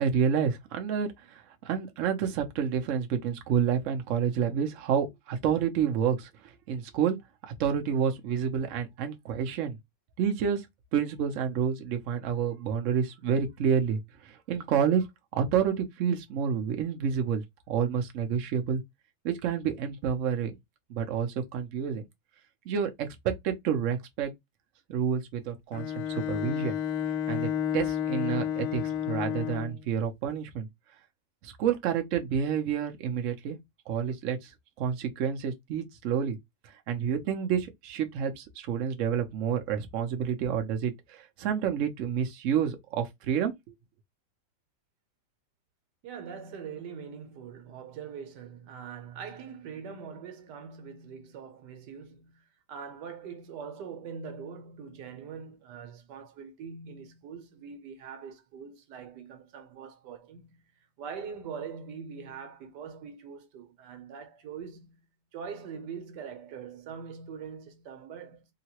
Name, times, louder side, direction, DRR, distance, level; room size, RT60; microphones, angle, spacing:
voice 1, 0.0-6.3 6.7-7.2 7.6-9.8 10.2-10.7 10.9-15.0 15.3-18.8 19.2-20.5 20.9-22.0 22.7-24.3 24.9-26.8 27.3-30.7 31.4-33.6 33.9-34.5 34.8-36.4 36.9-43.5, right 7 dB, 60° right, 0.9 m, -29 dB
Bowed string instrument, 25.7-29.9, left 9 dB, 70° left, 1.0 m, -31 dB
voice 2, 46.0-60.7 61.0-65.0 65.3-68.5, right 6 dB, 85° right, 1.4 m, -43 dB
3.8 x 2.1 x 2.9 m
omnidirectional pair, 1.8 m